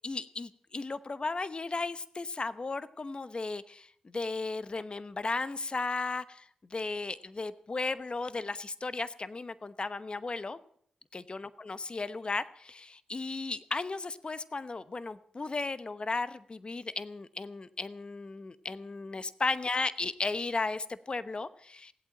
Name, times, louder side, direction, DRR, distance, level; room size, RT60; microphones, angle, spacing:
voice 1, 0.0-10.6 11.1-21.9, left 3 dB, 40° left, 14 dB, 0.9 m, -35 dB
18.0 x 8.4 x 8.9 m, 0.63 s
cardioid pair, 50°, 2 cm